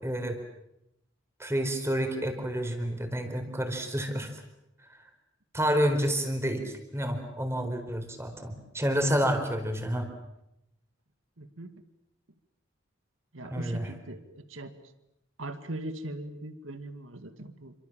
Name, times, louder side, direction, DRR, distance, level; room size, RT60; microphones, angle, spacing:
voice 1, 0.0-0.4 1.4-4.3 5.5-10.1 13.5-13.9, equal, 15° right, 6 dB, 4.3 m, -29 dB
voice 2, 11.4-11.7 13.3-14.7 15.4-17.7, right 1 dB, 85° right, 10 dB, 2.2 m, -40 dB
28.5 x 25.5 x 7.5 m, 0.84 s
head